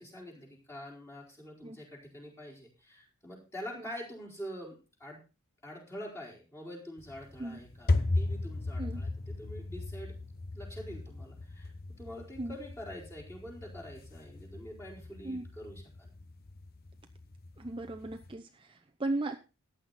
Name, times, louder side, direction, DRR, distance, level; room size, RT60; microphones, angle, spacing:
voice 1, 0.0-5.2 5.6-10.1 10.5-16.1, equal, 10° left, -3 dB, 4.5 m, -46 dB
sound 1, 7.0-18.3, left 2 dB, 45° left, 0.9 m, -37 dB
voice 2, 17.6-19.4, right 2 dB, 25° right, 6 dB, 0.7 m, -36 dB
14.5 x 9.9 x 4.2 m, 0.31 s
head